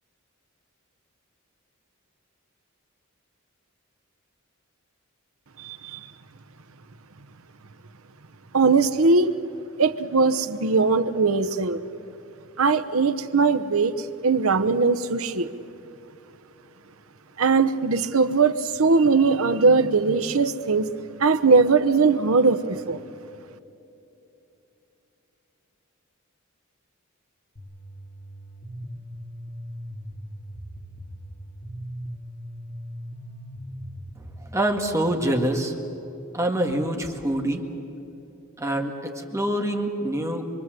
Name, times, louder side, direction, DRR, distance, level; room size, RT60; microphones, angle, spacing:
voice 1, 5.6-6.1 8.5-9.4 9.8-11.8 12.6-15.5 17.4-23.0, right 4 dB, 85° right, 11 dB, 1.0 m, -20 dB
sound 1, 27.6-34.4, equal, 45° left, 3.6 m, -39 dB
voice 2, 34.5-35.7 36.3-37.6 38.6-40.4, right 1 dB, 15° right, 3 dB, 1.9 m, -25 dB
25.5 x 24.5 x 7.7 m, 2.9 s
head